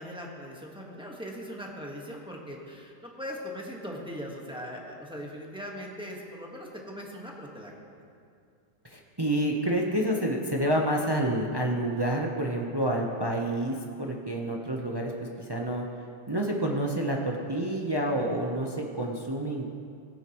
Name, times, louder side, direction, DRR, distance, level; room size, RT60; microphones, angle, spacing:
voice 1, 0.0-8.0, equal, 5° right, -2 dB, 1.2 m, -40 dB
voice 2, 8.8-15.1 15.4-15.8 16.3-19.6, right 1 dB, 30° right, 0 dB, 0.4 m, -28 dB
17.5 x 9.4 x 3.0 m, 2.3 s
omnidirectional pair, 1.8 m